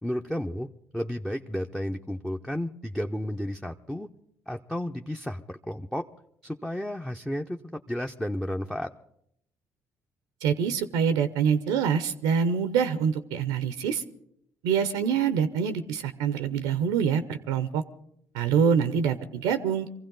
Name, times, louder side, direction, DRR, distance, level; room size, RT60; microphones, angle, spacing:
voice 1, 0.0-0.7 0.9-4.1 4.5-6.1 6.4-8.9, equal, 5° left, 4 dB, 0.7 m, -32 dB
voice 2, 10.4-14.0 14.6-17.8 18.3-19.9, right 7 dB, 85° right, 11 dB, 0.7 m, -25 dB
24.0 x 15.5 x 3.9 m, 0.74 s
hypercardioid pair, 60°, 7 cm